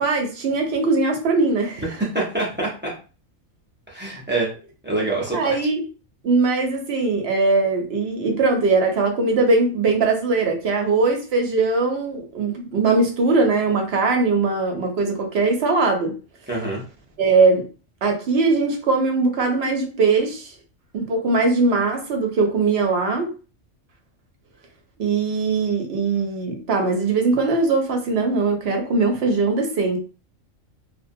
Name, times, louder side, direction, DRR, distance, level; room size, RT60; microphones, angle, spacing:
voice 1, 0.0-1.9 5.3-5.8 6.2-16.1 17.2-17.7 18.0-20.5 20.9-23.3 25.0-30.0, right 3 dB, 60° right, 3 dB, 0.7 m, -20 dB
voice 2, 2.0-2.9 3.9-4.5 4.8-5.6 16.5-16.8, right 2 dB, 15° right, -4 dB, 0.4 m, -25 dB
2.5 x 2.1 x 2.6 m, 0.35 s
omnidirectional pair, 1.4 m